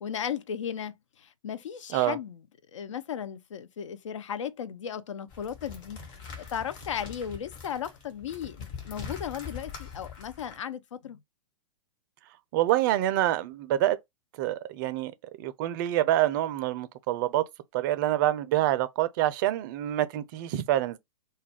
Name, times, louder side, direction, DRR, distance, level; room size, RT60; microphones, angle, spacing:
voice 1, 0.0-2.4 2.7-6.0 6.4-11.2, left 8 dB, 70° left, 0.4 m, -36 dB
sound 1, 5.3-10.6, left 6 dB, 45° left, 1.1 m, -43 dB
voice 2, 12.5-14.0 14.4-15.1 15.4-17.4 17.7-21.0, right 13 dB, 40° right, 0.4 m, -26 dB
2.3 x 2.2 x 3.3 m
figure-of-eight pair, 110°, 16 cm